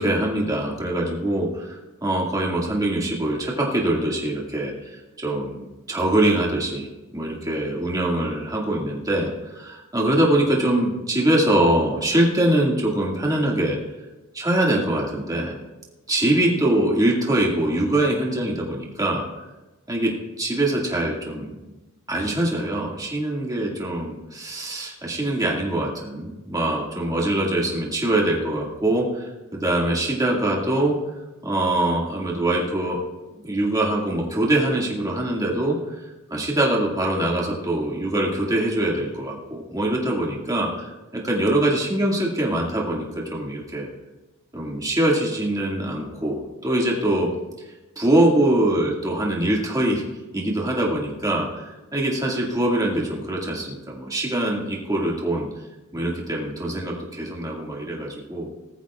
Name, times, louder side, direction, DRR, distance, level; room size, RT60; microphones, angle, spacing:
voice 1, 0.0-6.9 7.1-13.8 14.3-15.6 16.1-19.2 19.9-20.1 20.4-21.5 22.1-29.3 29.5-30.9 31.4-33.0 33.4-36.0 36.3-43.9 44.5-47.3 48.0-50.0 50.3-55.5 55.9-58.5, right 1 dB, 15° right, -3 dB, 2.1 m, -23 dB
19.0 x 14.0 x 2.4 m, 1.1 s
head